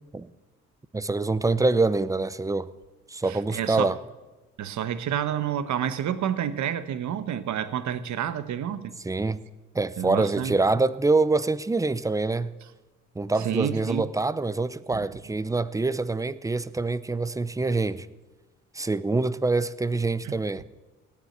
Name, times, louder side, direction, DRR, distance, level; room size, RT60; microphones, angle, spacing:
voice 1, 0.9-2.7 3.1-4.0 9.1-9.4 9.7-12.5 13.2-18.1 18.7-20.6, right 3 dB, 10° right, 0.6 m, -25 dB
voice 2, 3.3-3.9 4.6-8.9 10.0-10.5 13.4-14.1 14.9-15.0 20.2-20.3, right 9 dB, 70° right, 1.1 m, -29 dB
17.5 x 7.3 x 8.0 m
cardioid pair, 90°, 30 cm